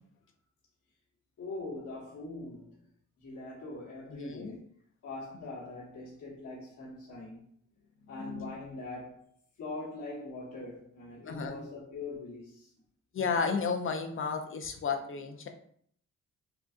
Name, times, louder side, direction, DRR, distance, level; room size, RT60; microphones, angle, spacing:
voice 1, 1.4-2.9 3.2-4.7 5.0-7.5 8.1-9.3 9.6-12.7, left 2 dB, 65° left, 1.2 m, -42 dB
voice 2, 4.1-4.6 8.1-8.5 11.3-11.7 13.1-15.5, left 5 dB, 45° left, 0.5 m, -33 dB
3.8 x 2.3 x 2.4 m
cardioid pair, 70°, 31 cm